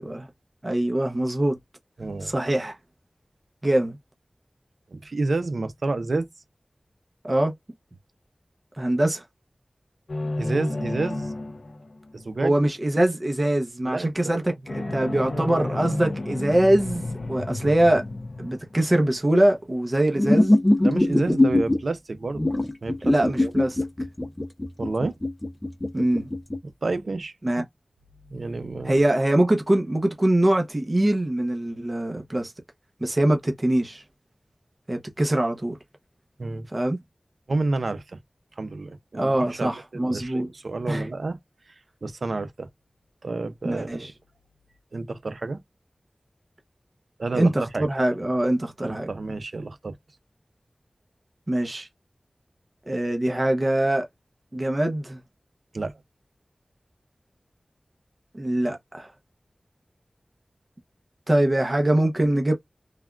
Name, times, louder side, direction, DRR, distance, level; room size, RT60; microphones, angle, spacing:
voice 1, 0.6-1.6 2.2-2.8 3.6-4.0 7.2-7.5 8.8-9.2 12.4-18.0 18.4-20.5 21.2-21.3 23.0-23.8 25.9-26.3 27.4-27.6 28.8-32.5 33.0-34.0 34.9-35.8 36.7-37.0 39.1-40.5 40.8-41.1 43.6-44.1 47.3-49.1 51.5-51.9 52.9-54.1 54.5-55.2 58.3-59.1 61.3-62.5, right 1 dB, 40° right, 0.8 m, -23 dB
voice 2, 2.0-2.3 4.9-6.3 10.4-11.3 12.1-12.6 13.9-14.5 14.8-15.6 20.8-22.4 22.8-23.2 23.4-23.5 24.8-25.2 26.6-27.7 28.3-29.0 36.4-36.7 37.5-38.2 38.6-41.4 41.7-41.8 42.0-42.7 43.2-44.0 44.9-45.6 47.2-47.9 48.8-50.0 55.7-55.9, right 3 dB, 80° right, 0.5 m, -30 dB
sound 1, 10.1-12.3 14.7-19.7, left 2 dB, 75° left, 0.4 m, -32 dB
sound 2, 20.2-21.8 22.4-26.6, left 1 dB, 25° left, 0.6 m, -21 dB
3.4 x 2.2 x 2.3 m
cardioid pair, 40°, 0 cm